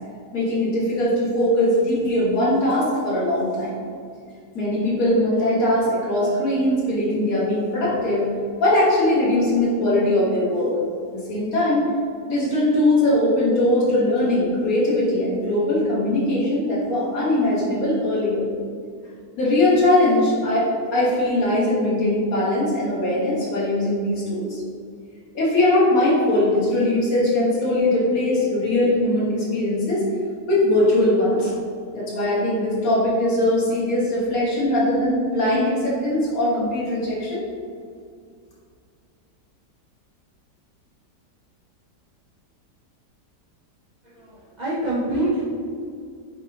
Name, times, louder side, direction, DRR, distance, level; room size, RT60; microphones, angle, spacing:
voice 1, 0.3-3.7 4.5-8.3 8.6-10.8 11.1-11.8 12.3-18.4 19.4-24.6 25.3-30.1 30.5-31.5 31.9-37.4, left 1 dB, 55° left, -7 dB, 1.6 m, -21 dB
voice 2, 44.0-45.4, right 1 dB, 80° right, -7 dB, 0.4 m, -25 dB
5.3 x 3.4 x 2.8 m, 2.2 s
omnidirectional pair, 1.8 m